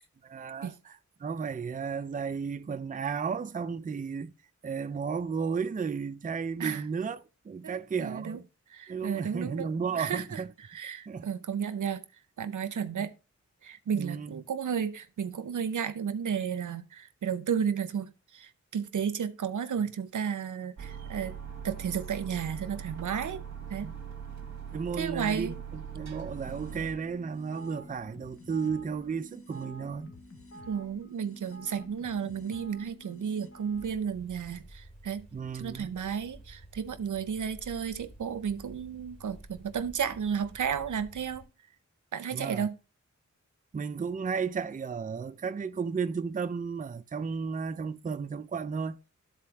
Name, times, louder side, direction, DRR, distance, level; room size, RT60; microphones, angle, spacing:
voice 1, 0.2-4.3 4.6-8.4 8.9-10.5 11.1-11.3 13.0-13.1 13.9-14.4 23.8-24.0 24.7-30.1 35.3-35.9 42.3-42.7 43.7-49.0, right 5 dB, 30° right, 0.4 m, -34 dB
voice 2, 7.6-8.4 8.7-10.4 10.7-12.0 12.4-13.1 13.6-21.4 21.6-23.4 23.7-23.9 25.0-25.5 30.7-35.2 35.5-41.4 42.1-42.8, right 7 dB, 80° right, 0.6 m, -33 dB
sound 1, 20.8-26.9, right 8 dB, 65° right, 1.2 m, -41 dB
sound 2, 26.2-33.9, equal, 45° left, 1.3 m, -49 dB
sound 3, 33.7-41.5, right 1 dB, 20° left, 3.2 m, -51 dB
12.5 x 4.2 x 3.4 m
wide cardioid pair, 85°, 30 cm